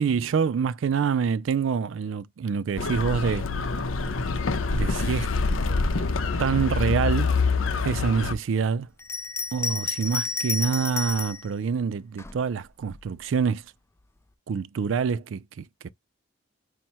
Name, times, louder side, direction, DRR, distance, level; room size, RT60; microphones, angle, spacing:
voice 1, 0.0-3.5 4.7-5.3 6.4-7.4 7.8-8.9 9.5-13.6 14.5-15.9, right 6 dB, 75° right, 0.4 m, -26 dB
sound 1, 2.8-8.3, left 4 dB, 85° left, 0.6 m, -26 dB
Bell, 9.0-11.5 12.2-13.1, left 4 dB, 15° left, 0.4 m, -31 dB
4.2 x 2.1 x 4.4 m
head